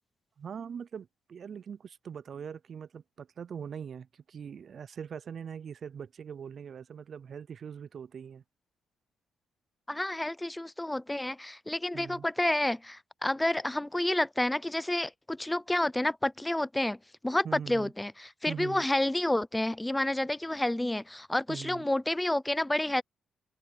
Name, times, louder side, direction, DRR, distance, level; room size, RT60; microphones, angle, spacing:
voice 1, 0.4-8.4 11.9-12.2 17.4-17.9 18.5-18.8 21.5-21.8, right 7 dB, 50° right, 0.4 m, -42 dB
voice 2, 9.9-17.0 17.2-23.0, left 1 dB, 10° left, 0.5 m, -29 dB
cardioid pair, 90°, 0 cm